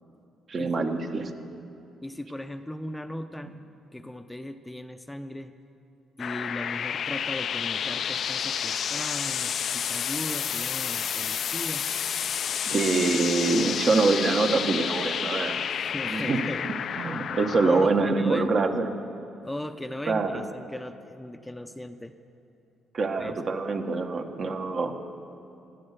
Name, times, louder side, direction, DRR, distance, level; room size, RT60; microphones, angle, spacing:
voice 1, 0.5-1.3 12.7-15.6 16.1-16.5 17.0-18.9 20.1-20.4 22.9-24.9, right 3 dB, 45° right, 6 dB, 1.3 m, -25 dB
voice 2, 2.0-3.5 3.9-5.5 6.2-11.9 15.6-16.6 17.6-18.5 19.4-22.1 23.2-23.4, left 1 dB, 10° left, 8 dB, 0.6 m, -37 dB
sound 1, 6.2-17.9, left 8 dB, 60° left, 0.4 m, -30 dB
16.0 x 12.5 x 6.7 m, 2.9 s
cardioid pair, 90°, 0 cm